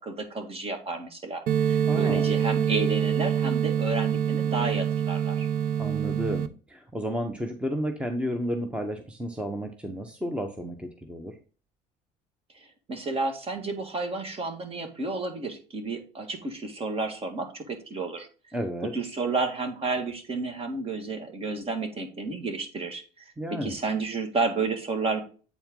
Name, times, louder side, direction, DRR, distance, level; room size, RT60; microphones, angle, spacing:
voice 1, 0.0-5.5 12.5-18.3 18.9-25.2, right 3 dB, 35° right, 7 dB, 1.8 m, -31 dB
sound 1, 1.5-6.5, right 8 dB, 60° right, 0.7 m, -25 dB
voice 2, 1.9-2.3 5.8-11.3 18.5-18.9 23.4-23.8, equal, 5° right, 5 dB, 0.9 m, -32 dB
8.2 x 4.4 x 3.7 m, 0.37 s
supercardioid pair, 95°, 17 cm